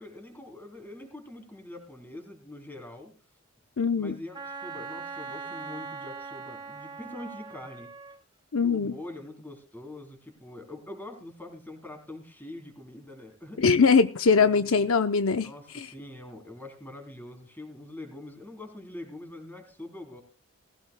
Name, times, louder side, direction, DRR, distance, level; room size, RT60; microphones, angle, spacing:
voice 1, 0.0-3.1 4.0-7.9 8.6-13.6 14.2-14.9 15.3-20.2, left 1 dB, 10° left, 3.3 m, -44 dB
voice 2, 3.8-4.2 8.5-9.0 13.6-15.5 15.7-15.9, left 5 dB, 65° left, 0.7 m, -22 dB
Wind instrument woodwind instrument, 4.3-8.2, right 4 dB, 20° right, 0.8 m, -40 dB
19.0 x 16.5 x 2.2 m
head